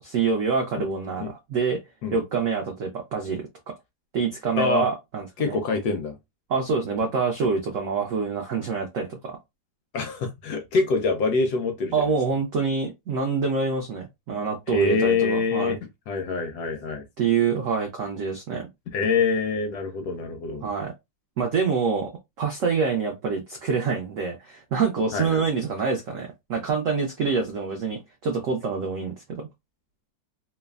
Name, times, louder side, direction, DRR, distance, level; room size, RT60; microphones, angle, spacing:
voice 1, 0.0-1.8 2.1-3.7 4.1-5.6 6.5-9.4 11.9-15.8 17.2-18.7 20.6-20.9 21.4-22.1 22.4-29.5, right 5 dB, 80° right, 0.7 m, -26 dB
voice 2, 4.6-4.9 5.4-6.2 9.9-11.9 14.7-15.8 16.1-17.0 18.9-20.6 25.1-25.4, left 4 dB, 75° left, 1.0 m, -25 dB
3.2 x 2.0 x 2.3 m
omnidirectional pair, 2.0 m